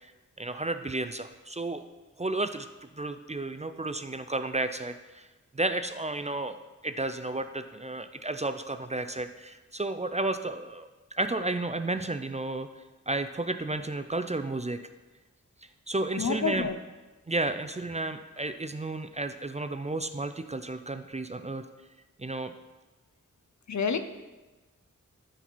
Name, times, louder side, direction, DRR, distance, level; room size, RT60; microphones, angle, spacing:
voice 1, 0.4-1.8 2.2-2.7 3.0-5.3 5.5-6.6 6.8-10.9 11.2-12.7 13.1-14.8 15.9-16.7 17.3-21.6 22.2-22.5, right 2 dB, 25° right, 9 dB, 0.4 m, -32 dB
voice 2, 16.2-16.8 23.7-24.0, left 5 dB, 65° left, 10 dB, 0.6 m, -28 dB
9.8 x 4.1 x 4.5 m, 1.2 s
wide cardioid pair, 45°, 30 cm